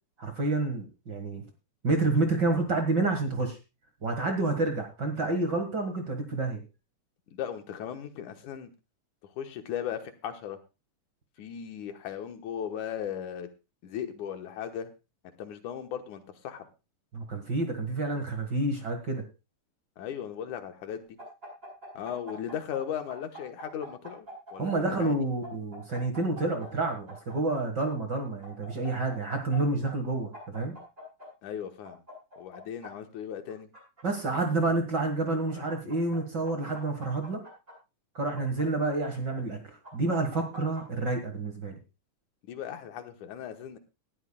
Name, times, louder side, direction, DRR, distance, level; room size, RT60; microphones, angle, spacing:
voice 1, 0.2-1.4 1.8-3.6 4.0-6.6 17.1-19.2 24.6-30.7 34.0-37.4 38.1-39.6 39.9-41.8, right 2 dB, 40° right, 5 dB, 1.8 m, -29 dB
voice 2, 7.3-8.7 9.2-10.6 11.4-13.5 13.8-14.9 15.4-16.7 20.0-21.1 21.9-24.3 24.5-25.1 31.4-32.0 32.4-33.7 42.4-43.8, left 9 dB, 75° left, 7 dB, 2.6 m, -37 dB
sound 1, 21.2-22.8 23.1-25.0 25.4-27.6 28.4-29.6 29.8-29.9 30.3-31.3 31.8-32.9 33.5-34.5 35.3-36.2 36.4-37.7 38.4-39.3 39.8-40.8, equal, 15° right, 6.9 m, -45 dB
18.5 x 12.5 x 2.3 m, 0.28 s
omnidirectional pair, 3.6 m